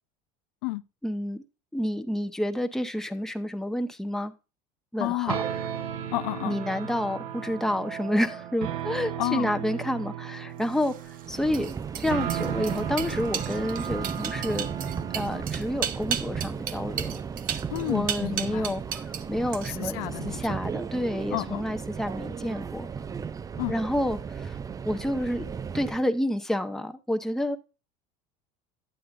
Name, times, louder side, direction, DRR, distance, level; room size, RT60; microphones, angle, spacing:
voice 1, 1.0-1.4 1.7-4.3 4.9-5.3 6.4-11.7 12.0-14.7 15.1-17.2 17.9-20.0 20.2-22.9 23.7-24.6 24.8-25.5 25.7-27.6, left 1 dB, ahead, 0.8 m, -29 dB
voice 2, 5.0-5.4 6.1-6.6 9.2-9.5 17.7-18.7 19.7-20.6 21.3-21.6 23.6-23.7, left 19 dB, 75° left, 0.4 m, -31 dB
sound 1, 5.3-15.4, right 10 dB, 80° right, 0.9 m, -35 dB
sound 2, 10.7-19.3 19.5-20.0, right 9 dB, 45° right, 0.7 m, -34 dB
Subway metro underground, 11.2-26.1, right 6 dB, 20° right, 0.3 m, -35 dB
9.7 x 8.4 x 2.4 m
supercardioid pair, 95°, 20 cm